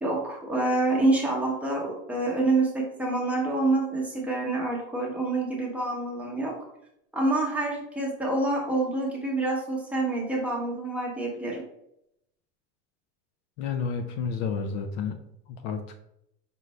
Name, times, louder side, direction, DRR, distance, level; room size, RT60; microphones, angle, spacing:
voice 1, 0.0-6.5 7.1-11.6, right 2 dB, 5° right, -3 dB, 0.9 m, -27 dB
voice 2, 13.6-15.2 15.5-15.9, left 5 dB, 50° left, 6 dB, 0.5 m, -30 dB
5.3 x 2.5 x 3.2 m, 0.77 s
supercardioid pair, 150°, 34 cm